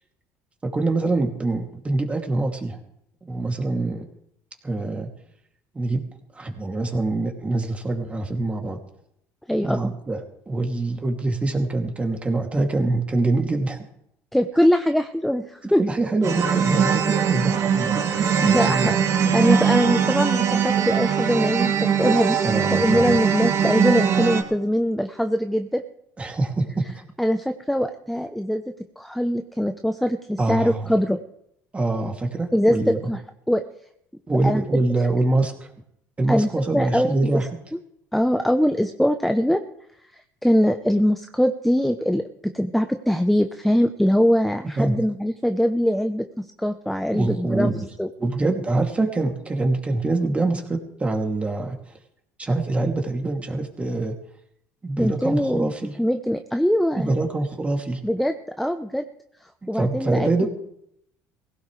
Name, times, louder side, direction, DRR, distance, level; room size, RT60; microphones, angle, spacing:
voice 1, 0.6-2.8 3.2-4.1 4.6-5.1 5.7-6.0 6.3-8.8 9.6-10.2 10.5-13.8 15.6-18.0 18.4-18.9 22.4-23.1 26.2-26.8 30.4-30.9 31.7-33.0 34.3-35.7 36.2-37.5 44.8-44.9 47.1-47.8 48.2-51.7 52.4-54.1 54.8-55.9 57.0-58.0 59.7-60.5, right 2 dB, 20° right, 2 dB, 2.7 m, -24 dB
voice 2, 9.5-9.9 14.3-15.8 18.4-19.0 19.3-22.4 22.7-25.8 27.2-28.6 29.0-31.2 32.5-33.2 33.5-33.6 34.4-34.6 36.3-37.4 38.1-39.6 40.4-47.7 48.0-48.1 55.0-55.7 56.0-57.1 58.0-59.0 59.7-60.5, equal, ahead, 7 dB, 0.8 m, -22 dB
sound 1, 16.2-24.4, right 7 dB, 50° right, 2.5 m, -21 dB
20.0 x 17.0 x 3.4 m, 0.76 s
supercardioid pair, 100°, 7 cm